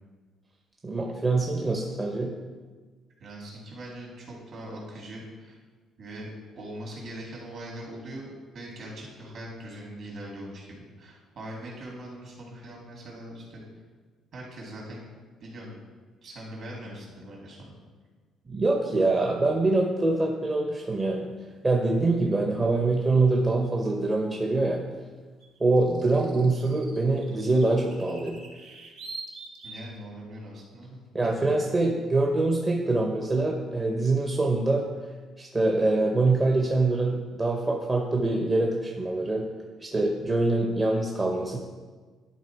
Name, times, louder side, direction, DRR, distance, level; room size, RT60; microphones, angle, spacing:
voice 1, 0.8-2.3 18.5-21.3 21.6-24.8 25.6-28.4 31.1-34.9 35.4-39.4 39.8-41.6, right 2 dB, 25° right, 1 dB, 0.6 m, -24 dB
voice 2, 3.2-5.6 6.0-13.6 14.3-15.1 15.4-15.8 16.2-17.7 29.6-31.6, right 1 dB, 55° right, -3 dB, 2.5 m, -41 dB
sound 1, 21.0-21.2 23.6-23.7 25.4-30.0, right 3 dB, 75° right, 1.3 m, -44 dB
11.0 x 3.7 x 4.5 m, 1.4 s
cardioid pair, 125°, 0 cm